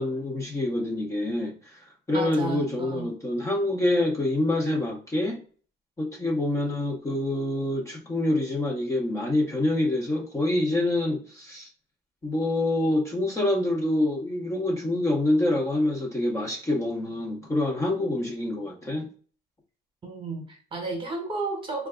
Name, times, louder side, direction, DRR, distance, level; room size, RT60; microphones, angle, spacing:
voice 1, 0.0-1.5 2.1-5.4 6.0-11.7 12.2-19.1, left 1 dB, 15° left, 0.7 m, -26 dB
voice 2, 2.1-3.1 20.0-21.9, right 3 dB, 30° right, 1.0 m, -33 dB
2.6 x 2.3 x 3.6 m
cardioid pair, 110°, 17 cm